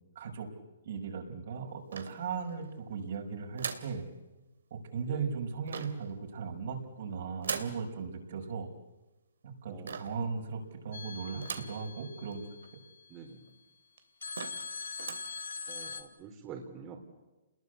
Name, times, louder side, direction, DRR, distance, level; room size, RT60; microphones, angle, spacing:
voice 1, 0.2-0.5 0.8-4.1 4.7-8.7 9.4-12.4, right 5 dB, 60° right, 2 dB, 5.8 m, -37 dB
sound 1, 1.9-2.7 3.6-4.0 5.7-6.1 7.4-7.8 9.9-10.2 11.4-11.8 12.3-12.4 12.6-12.7 13.5-13.6 14.0-14.1 14.3-14.7 15.0-15.3, right 5 dB, 80° right, 2.9 m, -39 dB
voice 2, 9.7-10.0 13.1-13.4 15.7-17.0, right 6 dB, 25° right, 1 dB, 3.6 m, -46 dB
sound 2, 10.9-13.2 14.2-16.0, left 5 dB, 85° left, 2.1 m, -42 dB
29.0 x 21.0 x 8.2 m, 1.1 s
hypercardioid pair, 145°, 0 cm